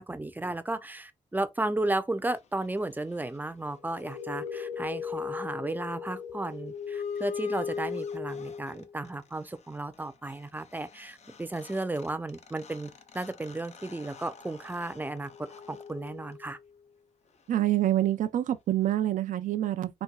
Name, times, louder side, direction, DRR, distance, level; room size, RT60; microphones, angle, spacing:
voice 1, 0.0-15.3 15.7-16.6, right 2 dB, 15° right, 0.5 m, -34 dB
sound 1, 3.7-9.1 11.0-11.1 11.3-16.7, left 6 dB, 55° left, 0.5 m, -39 dB
voice 2, 17.5-20.0, right 13 dB, 80° right, 0.4 m, -26 dB
4.1 x 2.2 x 2.2 m
cardioid pair, 85°, 13 cm